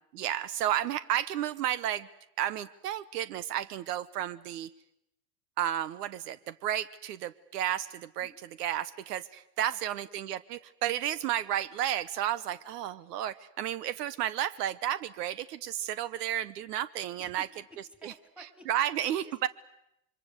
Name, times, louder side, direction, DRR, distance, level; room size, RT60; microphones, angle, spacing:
voice 1, 0.1-2.1 2.4-4.7 5.6-8.3 8.6-17.5 18.0-18.1 18.7-19.5, right 11 dB, 70° right, 17 dB, 1.0 m, -32 dB
voice 2, 9.7-10.1 12.5-12.6 17.2-18.7 19.1-19.3, equal, ahead, 7 dB, 3.2 m, -54 dB
26.5 x 24.0 x 8.1 m, 0.80 s
supercardioid pair, 145°, 49 cm